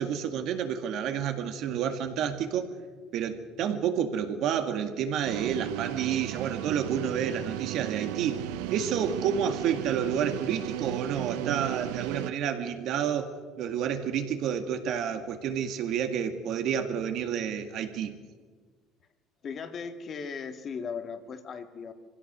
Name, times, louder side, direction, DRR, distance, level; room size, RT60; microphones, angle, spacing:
voice 1, 0.0-2.7 3.1-8.4 8.7-18.2, right 8 dB, 65° right, 7 dB, 2.0 m, -30 dB
sound 1, 5.2-12.3, right 15 dB, 80° right, 0.6 m, -35 dB
voice 2, 19.4-21.9, left 5 dB, 45° left, 7 dB, 2.0 m, -37 dB
24.5 x 16.0 x 6.7 m, 1.5 s
supercardioid pair, 75°, 0 cm